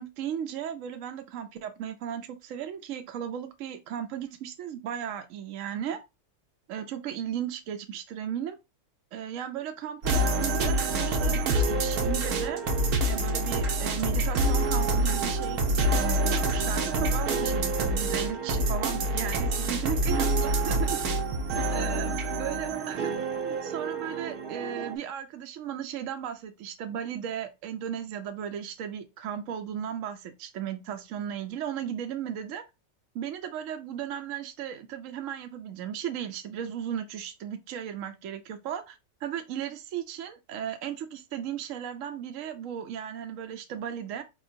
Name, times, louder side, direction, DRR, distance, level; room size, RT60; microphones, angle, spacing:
voice 1, 0.0-6.0 6.7-8.6 9.1-12.6 13.0-21.0 21.5-23.1 23.4-32.7 33.1-44.2, right 9 dB, 70° right, 0.9 m, -36 dB
sound 1, 10.0-24.9, right 2 dB, 85° right, 1.4 m, -27 dB
4.7 x 3.6 x 2.6 m
omnidirectional pair, 1.5 m